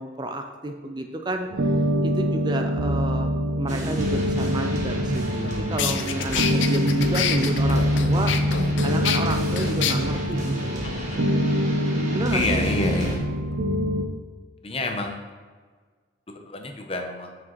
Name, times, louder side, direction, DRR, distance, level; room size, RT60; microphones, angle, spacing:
voice 1, 0.0-1.7 2.0-10.9 11.7-12.6, right 2 dB, 25° right, 5 dB, 0.4 m, -31 dB
sound 1, 1.5-14.0, equal, 90° right, 0.6 m, -25 dB
sound 2, 3.7-13.2, right 1 dB, 40° right, 1.3 m, -31 dB
sound 3, 5.3-5.4 5.8-9.9, left 8 dB, 80° left, 0.5 m, -27 dB
voice 2, 10.8-11.2 12.3-13.2 14.6-15.2 16.3-17.3, left 2 dB, 30° left, 4 dB, 0.7 m, -28 dB
7.5 x 6.1 x 3.0 m, 1.5 s
head